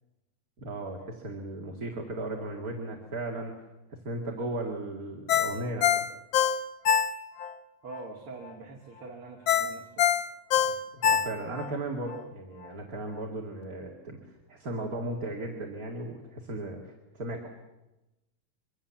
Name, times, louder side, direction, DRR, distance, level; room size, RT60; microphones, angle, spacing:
voice 1, 0.6-3.5 3.9-6.0 10.7-17.5, right 2 dB, 30° right, 1 dB, 2.4 m, -36 dB
Ringtone, 5.3-7.5 7.9-8.0 9.5-11.7 12.1-12.2, left 8 dB, 70° left, 1.2 m, -25 dB
voice 2, 7.8-10.1, right 3 dB, 50° right, 1 dB, 3.0 m, -44 dB
25.0 x 24.5 x 7.2 m, 1.0 s
omnidirectional pair, 3.4 m